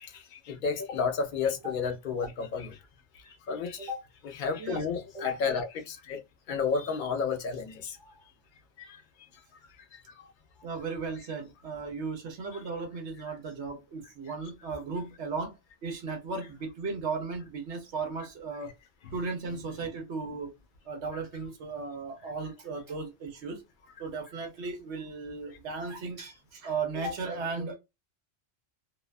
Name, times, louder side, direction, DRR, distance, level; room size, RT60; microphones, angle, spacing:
voice 1, 0.0-2.8 3.5-3.9 4.4-6.2 6.5-8.0 8.8-8.9 19.0-19.1, left 5 dB, 55° left, 0.6 m, -31 dB
voice 2, 10.6-18.7 19.1-20.5 20.8-23.6 24.0-27.8, right 4 dB, 75° right, 1.1 m, -36 dB
2.6 x 2.2 x 2.3 m
omnidirectional pair, 1.2 m